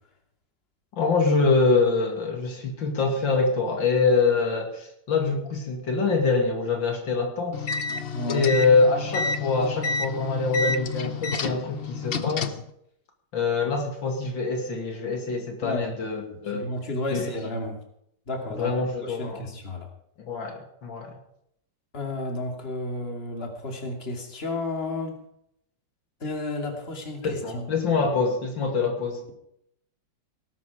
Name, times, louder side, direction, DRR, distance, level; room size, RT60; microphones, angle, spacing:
voice 1, 1.0-7.6 8.3-12.5 13.3-16.7 17.1-17.3 18.6-19.4 20.2-21.2 27.2-29.2, left 4 dB, 80° left, 3 dB, 3.1 m, -24 dB
sound 1, 7.5-12.7, left 4 dB, 45° left, 0.8 m, -30 dB
voice 2, 8.1-8.5 15.6-15.9 16.3-17.8 18.3-18.7 19.0-19.9 21.9-25.2 26.2-27.7, left 2 dB, 30° left, 3 dB, 2.8 m, -32 dB
18.5 x 12.0 x 4.9 m, 0.74 s
omnidirectional pair, 2.0 m